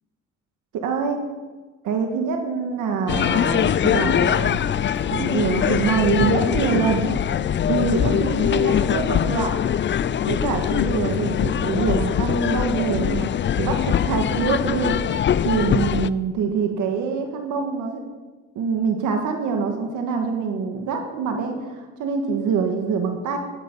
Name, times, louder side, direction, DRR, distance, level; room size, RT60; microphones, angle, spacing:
voice 1, 0.7-1.2 1.8-4.6 5.1-7.0 7.6-9.5 10.3-13.3 13.5-15.0 15.4-18.0 18.5-23.4, right 5 dB, 85° right, 4 dB, 1.6 m, -25 dB
sound 1, 3.1-16.1, left 9 dB, 40° left, 0.5 m, -22 dB
sound 2, 3.5-10.9, left 2 dB, 25° right, 5.5 m, -42 dB
15.0 x 10.5 x 5.4 m, 1.3 s
cardioid pair, 90°, 30 cm